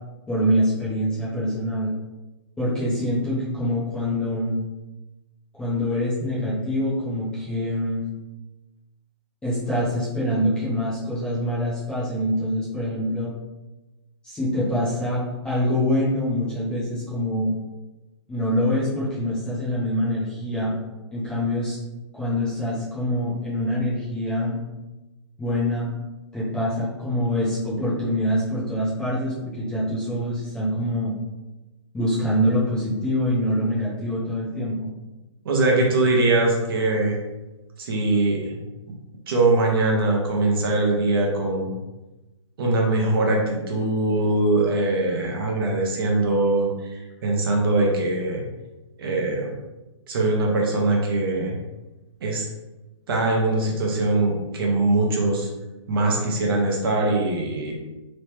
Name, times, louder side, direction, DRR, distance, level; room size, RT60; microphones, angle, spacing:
voice 1, 0.3-1.9 2.6-4.6 5.5-8.0 9.4-13.3 14.2-17.5 18.3-20.7 21.1-21.8 22.1-24.6 25.4-25.9 26.3-31.1 31.9-34.9, equal, 5° left, -9 dB, 0.5 m, -25 dB
voice 2, 35.4-37.2 37.8-38.6 39.3-41.7 42.6-48.4 49.0-49.5 50.1-51.6 52.2-52.5 53.1-55.5 55.9-57.7, right 2 dB, 50° right, 0 dB, 0.7 m, -22 dB
3.0 x 2.0 x 3.2 m, 1.1 s
hypercardioid pair, 155°, 16 cm